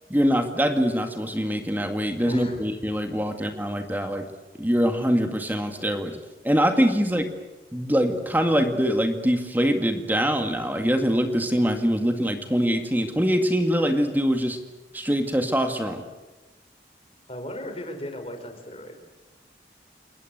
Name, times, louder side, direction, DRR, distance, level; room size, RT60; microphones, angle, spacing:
voice 1, 0.1-4.3 4.6-6.2 6.4-7.2 7.7-14.6 14.9-16.0, equal, 10° right, 6 dB, 2.0 m, -23 dB
voice 2, 2.2-2.6 7.0-7.2 17.3-18.9, left 1 dB, 35° left, 5 dB, 5.1 m, -37 dB
29.0 x 21.0 x 8.1 m, 1.1 s
head